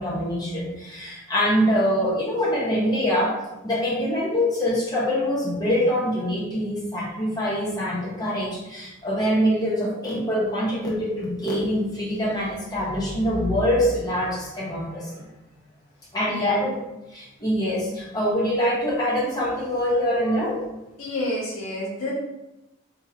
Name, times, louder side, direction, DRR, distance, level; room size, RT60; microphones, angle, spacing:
voice 1, 0.0-3.3 3.6-15.3 16.1-16.7 17.1-20.6, equal, 20° left, -6 dB, 0.8 m, -24 dB
voice 2, 16.3-16.7 21.0-22.1, left 1 dB, 80° left, -6 dB, 1.2 m, -29 dB
3.1 x 2.7 x 2.4 m, 0.95 s
head